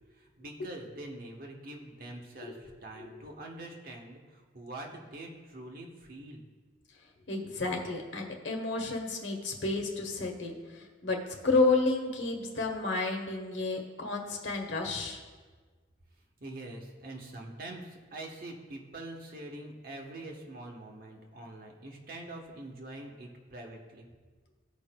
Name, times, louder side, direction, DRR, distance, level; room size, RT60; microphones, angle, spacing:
voice 1, 0.1-6.4 16.4-24.1, right 1 dB, 50° right, 1 dB, 1.0 m, -44 dB
voice 2, 7.3-15.2, left 3 dB, 75° left, 2 dB, 1.2 m, -31 dB
15.5 x 5.2 x 2.2 m, 1.4 s
head